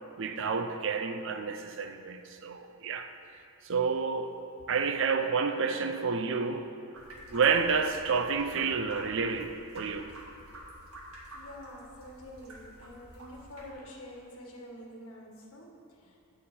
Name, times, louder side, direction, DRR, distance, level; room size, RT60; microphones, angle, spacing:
voice 1, 0.2-3.1 3.6-4.4 4.7-6.7 7.3-10.1, right 5 dB, 60° right, 0.5 m, -29 dB
sound 1, 6.9-13.7, right 1 dB, 75° right, 1.7 m, -49 dB
voice 2, 11.3-16.2, left 1 dB, 75° left, 1.6 m, -47 dB
7.1 x 6.9 x 7.8 m
head